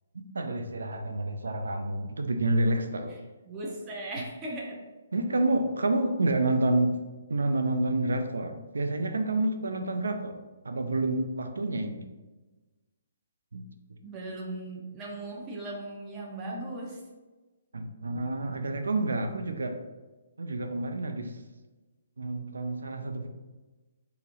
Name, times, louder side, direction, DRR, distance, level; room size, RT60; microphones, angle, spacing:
voice 1, 0.3-3.2 5.1-7.0 7.3-10.4 10.6-12.0 13.5-13.6 13.9-14.0 17.7-19.8 20.4-21.4 22.2-23.3, right 2 dB, 85° right, 7 dB, 0.4 m, -28 dB
voice 2, 3.5-4.8 14.0-17.0, right 1 dB, 20° right, -2 dB, 0.8 m, -38 dB
3.9 x 2.9 x 2.6 m, 1.2 s
hypercardioid pair, 145°, 0 cm